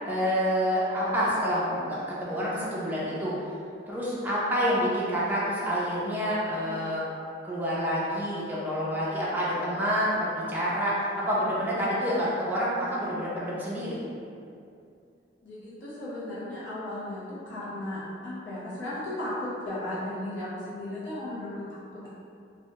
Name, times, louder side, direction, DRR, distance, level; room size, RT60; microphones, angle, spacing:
voice 1, 0.1-3.3 3.9-7.0 7.4-14.0, equal, 10° right, -8 dB, 0.5 m, -28 dB
voice 2, 15.4-21.8, left 1 dB, 85° left, -10 dB, 0.9 m, -35 dB
2.6 x 2.2 x 2.9 m, 2.5 s
head